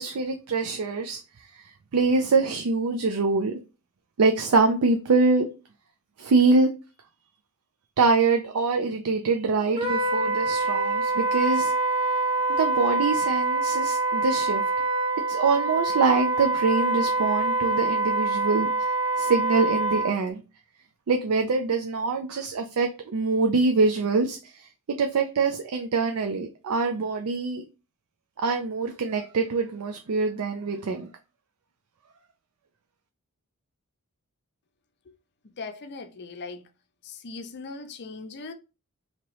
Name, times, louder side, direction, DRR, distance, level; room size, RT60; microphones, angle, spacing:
voice 1, 0.0-3.6 4.2-5.5 6.2-6.7 8.0-11.7 12.5-14.6 15.3-20.4 21.1-24.7 25.0-27.6 28.4-31.1, right 4 dB, 75° right, 0.4 m, -24 dB
Wind instrument woodwind instrument, 9.8-20.2, right 2 dB, 25° right, 1.0 m, -25 dB
voice 2, 35.6-36.6 37.0-38.5, left 3 dB, 50° left, 0.6 m, -39 dB
3.0 x 2.9 x 4.5 m
head